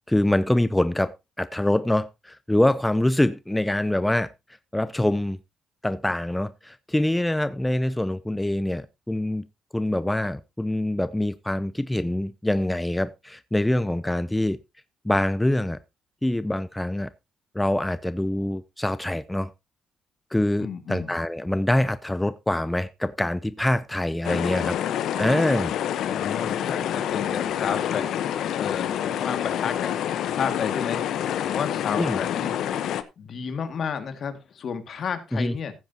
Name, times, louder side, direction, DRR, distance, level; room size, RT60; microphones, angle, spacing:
voice 1, 0.1-4.3 4.7-5.4 5.8-9.4 9.7-14.6 15.0-15.8 16.2-17.1 17.5-19.5 20.3-24.8 25.2-25.7 32.0-32.2 35.3-35.5, left 1 dB, 10° left, 0.5 m, -24 dB
voice 2, 20.6-21.1 26.0-28.1 28.6-32.6 32.9-35.7, left 6 dB, 55° left, 1.9 m, -32 dB
sound 1, 24.2-33.0, left 10 dB, 75° left, 0.9 m, -27 dB
15.0 x 9.1 x 2.8 m
cardioid pair, 90°, 0 cm